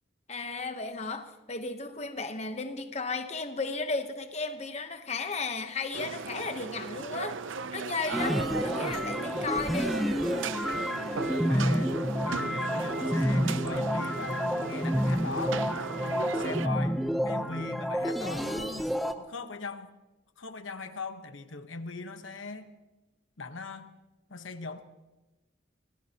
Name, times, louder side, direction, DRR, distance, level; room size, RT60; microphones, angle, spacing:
voice 1, 0.3-7.4 7.7-10.0, left 3 dB, 35° left, 7 dB, 0.9 m, -34 dB
sound 1, 5.9-16.7, right 5 dB, 80° right, 0.6 m, -37 dB
sound 2, 8.1-19.1, equal, ahead, 0.7 m, -29 dB
voice 2, 11.3-12.0 12.2-15.7 16.1-17.0 17.2-18.9 19.2-19.9 20.4-22.7 23.4-23.9 24.3-24.8, left 3 dB, 80° left, 8 dB, 1.1 m, -40 dB
25.0 x 17.0 x 2.9 m, 1.1 s
head